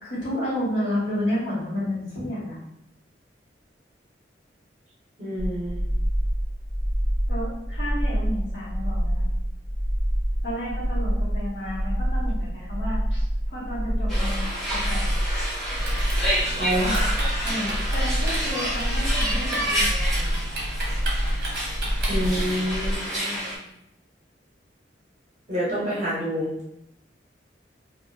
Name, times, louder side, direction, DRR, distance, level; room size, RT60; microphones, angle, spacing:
voice 1, 0.0-2.6 7.3-9.2 10.4-15.1 17.4-20.3 23.2-23.6 25.7-25.9, left 1 dB, 90° left, -7 dB, 1.4 m, -31 dB
voice 2, 5.2-5.8 16.6-17.2 22.1-23.0 25.5-26.5, equal, 40° right, -7 dB, 1.1 m, -27 dB
sound 1, 5.4-23.0, equal, 20° left, 0.8 m, -27 dB
sound 2, 14.1-23.6, right 1 dB, ahead, 1.0 m, -29 dB
Typing, 15.8-22.6, right 1 dB, 60° right, 0.9 m, -35 dB
2.8 x 2.5 x 2.8 m, 0.82 s
head